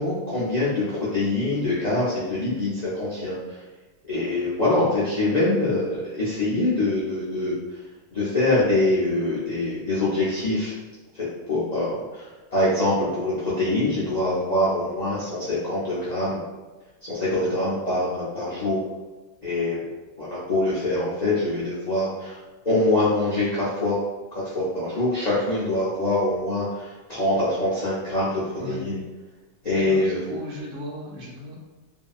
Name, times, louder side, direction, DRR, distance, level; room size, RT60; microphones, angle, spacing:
voice 1, 0.0-3.6 4.1-7.8 8.1-10.7 11.1-16.4 17.0-18.8 19.4-19.8 20.2-22.4 22.6-24.0 24.3-29.0 29.6-30.2, left 2 dB, 60° left, -10 dB, 0.4 m, -24 dB
voice 2, 28.6-28.9 29.6-31.5, equal, 70° right, -5 dB, 1.3 m, -36 dB
2.7 x 2.7 x 2.3 m, 1.2 s
omnidirectional pair, 1.8 m